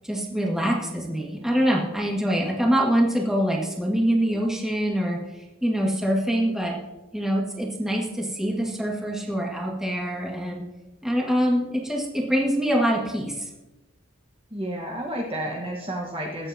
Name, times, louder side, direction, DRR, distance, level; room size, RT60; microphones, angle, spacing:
voice 1, 0.0-6.8 7.1-10.7 11.0-13.5, equal, ahead, -2 dB, 1.9 m, -24 dB
voice 2, 14.5-16.5, right 1 dB, 25° right, -3 dB, 1.4 m, -31 dB
21.5 x 8.8 x 2.9 m, 1.1 s
head